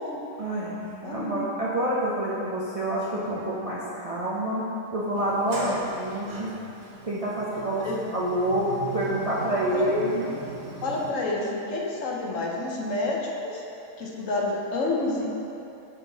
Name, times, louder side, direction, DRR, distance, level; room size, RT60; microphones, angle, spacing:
voice 1, 0.4-4.7 4.9-6.5 7.0-10.3, right 1 dB, 40° right, -7 dB, 0.5 m, -27 dB
voice 2, 1.0-1.4 5.5-5.9 7.3-7.4 7.8-8.0 9.7-9.9 10.8-13.6 14.0-15.3, left 2 dB, 70° left, -2 dB, 1.1 m, -29 dB
Sliding door, 5.1-11.1, right 3 dB, 80° right, 1.3 m, -39 dB
7.5 x 4.1 x 3.9 m, 2.8 s
omnidirectional pair, 1.4 m